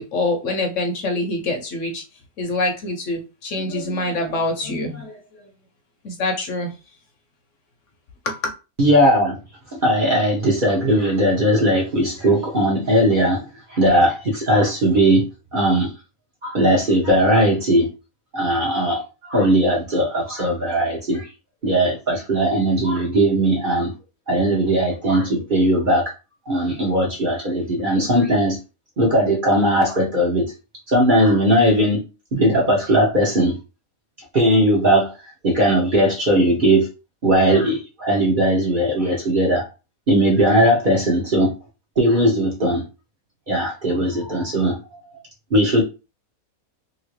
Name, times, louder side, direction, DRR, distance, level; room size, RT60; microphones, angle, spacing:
voice 1, 0.0-2.0 2.4-5.5 6.0-6.7 8.2-8.5, left 2 dB, 65° left, 0.9 m, -25 dB
voice 2, 8.8-9.4 9.7-15.3 15.5-15.9 16.4-17.9 18.3-21.3 21.6-23.9 24.3-26.1 26.5-28.6 29.0-30.5 30.9-32.0 32.3-33.6 34.3-35.2 35.4-36.9 37.2-39.7 40.1-41.6 42.0-42.8 43.5-44.8 45.5-45.8, right 1 dB, 40° right, 0.9 m, -18 dB
2.9 x 2.6 x 3.0 m
omnidirectional pair, 1.5 m